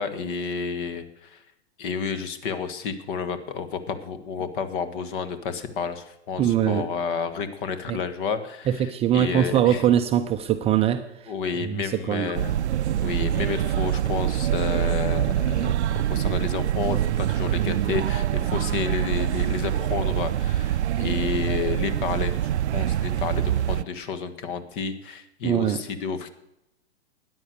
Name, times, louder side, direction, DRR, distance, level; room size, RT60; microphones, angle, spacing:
voice 1, 0.0-1.4 1.8-9.8 11.3-12.6 13.0-26.3, left 6 dB, 45° left, 11 dB, 1.7 m, -31 dB
voice 2, 6.4-6.9 7.9-8.0 8.7-11.3 11.6-12.3 25.4-25.8, right 10 dB, 20° right, 7 dB, 0.5 m, -22 dB
sound 1, 12.3-23.8, right 11 dB, 75° right, 0.5 m, -25 dB
13.5 x 9.8 x 6.6 m, 0.84 s
hypercardioid pair, 115°, 34 cm